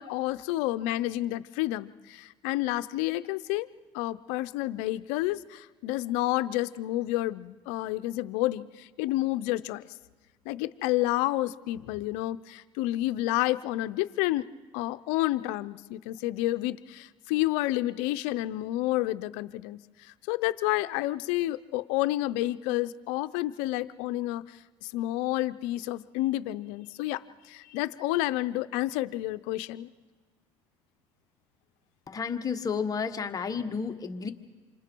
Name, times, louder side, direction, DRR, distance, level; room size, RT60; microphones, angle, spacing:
voice 1, 0.0-3.7 3.9-9.8 10.5-14.5 14.7-29.9, left 16 dB, 85° left, 14 dB, 0.6 m, -30 dB
voice 2, 32.1-34.3, left 6 dB, 35° left, 6 dB, 1.5 m, -31 dB
28.5 x 26.0 x 4.6 m, 1.4 s
supercardioid pair, 90°, 11 cm